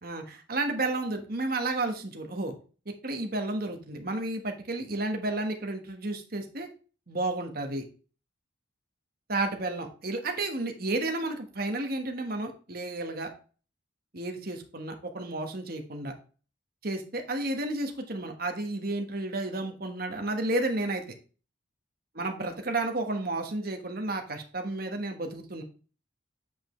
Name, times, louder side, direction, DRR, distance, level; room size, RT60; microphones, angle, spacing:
voice 1, 0.0-2.5 2.9-6.7 7.1-7.8 9.3-13.3 14.1-16.1 16.8-21.0 22.1-25.6, right 2 dB, 50° right, 4 dB, 1.4 m, -32 dB
8.5 x 5.5 x 3.2 m, 0.37 s
head